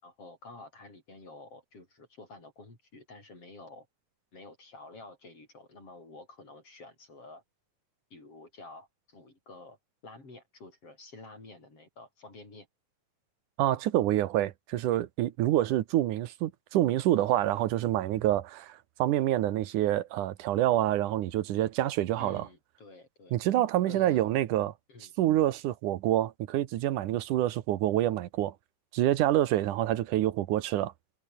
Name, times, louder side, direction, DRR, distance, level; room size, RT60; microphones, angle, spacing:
voice 1, 0.0-3.9 4.3-7.4 8.1-9.8 10.0-12.7 22.2-23.4 23.8-24.3 24.9-25.1, left 2 dB, 45° left, 8.8 m, -50 dB
voice 2, 13.6-22.5 23.3-24.7 25.2-28.5 28.9-30.9, right 13 dB, 80° right, 2.6 m, -27 dB
omnidirectional pair, 3.5 m